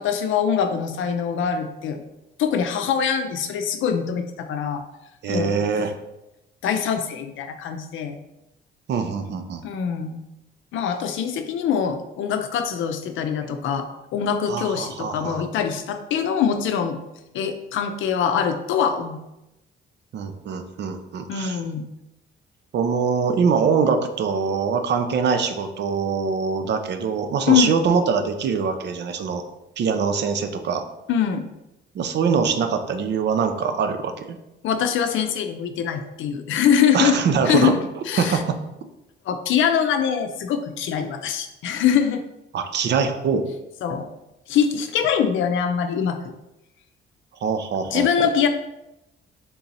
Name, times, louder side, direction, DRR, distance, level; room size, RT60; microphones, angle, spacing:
voice 1, 0.0-2.0 2.4-4.8 5.3-5.6 6.6-8.2 9.6-10.2 10.7-17.0 17.3-19.2 21.3-21.9 27.5-27.7 31.1-31.4 34.6-38.4 39.3-42.2 43.8-44.1 44.5-46.3 47.9-48.5, left 8 dB, 75° left, 7 dB, 0.5 m, -23 dB
voice 2, 5.2-5.9 8.9-9.7 14.5-15.4 20.1-21.6 22.7-29.4 29.8-30.8 31.9-34.4 36.9-37.7 38.2-38.6 42.5-43.5 47.4-48.3, right 6 dB, 60° right, 7 dB, 0.6 m, -23 dB
3.8 x 2.9 x 4.0 m, 0.91 s
cardioid pair, 90°, 20 cm